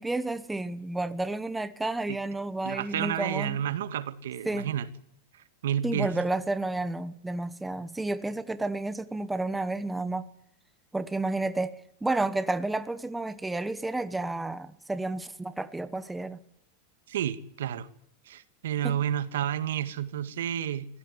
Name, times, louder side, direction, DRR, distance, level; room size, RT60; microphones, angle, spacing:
voice 1, 0.0-3.6 4.4-4.7 5.8-10.3 10.9-11.8 12.0-16.4 18.8-19.0, right 2 dB, 5° right, 1.0 m, -31 dB
voice 2, 2.6-4.9 5.6-6.1 17.1-17.9 18.3-20.9, right 10 dB, 85° right, 1.8 m, -30 dB
24.0 x 16.0 x 9.7 m
supercardioid pair, 165°, 0 cm